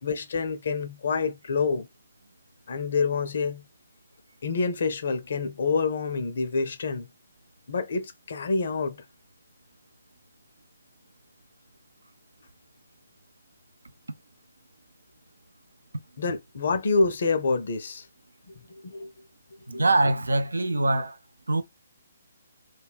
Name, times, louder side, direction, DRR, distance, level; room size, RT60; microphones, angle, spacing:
voice 1, 0.0-1.9 2.7-3.6 4.4-7.1 7.7-9.0 16.2-18.1 18.5-19.1 19.7-19.8, left 4 dB, 50° left, 0.5 m, -27 dB
voice 2, 19.7-21.2 21.5-21.6, right 2 dB, 70° right, 0.4 m, -23 dB
2.3 x 2.2 x 3.4 m
figure-of-eight pair, 135°, 0 cm